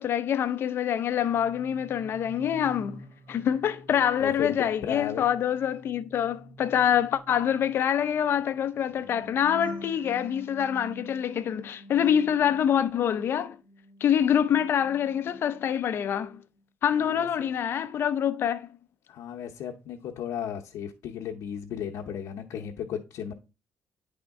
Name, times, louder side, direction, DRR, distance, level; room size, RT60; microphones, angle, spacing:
voice 1, 0.0-13.6 14.0-16.4 16.8-18.7, left 9 dB, 50° left, 0.5 m, -26 dB
sound 1, 1.1-13.3 13.6-15.7 16.0-16.4, right 1 dB, 55° right, 2.1 m, -48 dB
voice 2, 4.2-5.2 16.9-17.5 19.1-23.3, left 8 dB, 85° left, 0.8 m, -35 dB
9.7 x 3.5 x 3.5 m
cardioid pair, 175°, 5 cm